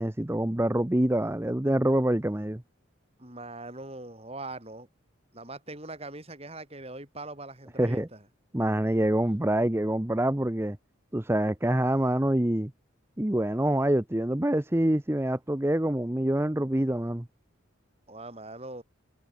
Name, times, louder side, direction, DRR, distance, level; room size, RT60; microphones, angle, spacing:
voice 1, 0.0-2.6 7.8-8.1 8.5-10.8 11.1-12.7 13.2-17.3, right 1 dB, 10° right, 0.7 m, -26 dB
voice 2, 3.2-4.9 5.3-8.2 18.1-18.8, right 2 dB, 30° right, 6.5 m, -41 dB
head